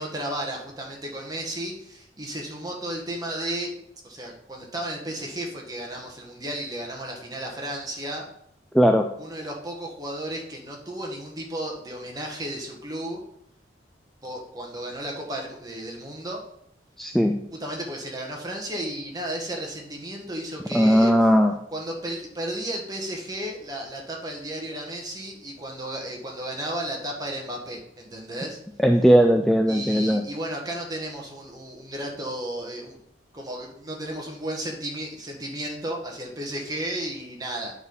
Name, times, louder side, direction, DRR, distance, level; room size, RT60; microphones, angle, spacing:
voice 1, 0.0-3.7 4.0-8.2 9.2-13.2 14.2-16.4 17.6-21.1 21.7-28.6 29.7-33.0 33.3-37.7, right 1 dB, 20° right, 0 dB, 1.4 m, -33 dB
voice 2, 8.7-9.1 17.0-17.4 20.7-21.5 28.8-30.2, equal, ahead, 4 dB, 0.3 m, -18 dB
9.5 x 4.0 x 5.4 m, 0.74 s
head